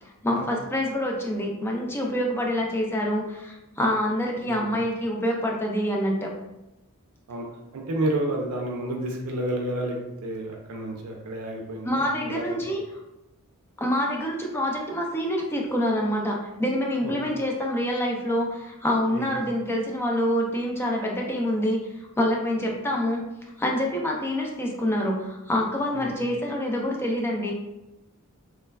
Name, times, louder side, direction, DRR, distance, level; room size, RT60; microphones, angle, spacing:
voice 1, 0.0-6.3 11.8-12.8 13.8-21.8 22.2-23.2 23.6-27.5, equal, 10° left, 0 dB, 0.4 m, -26 dB
voice 2, 4.5-4.8 7.3-7.5 7.7-12.8 17.0-17.1 19.1-19.4 25.9-26.1, right 1 dB, 80° right, 0 dB, 0.5 m, -30 dB
3.1 x 2.2 x 2.2 m, 0.94 s
head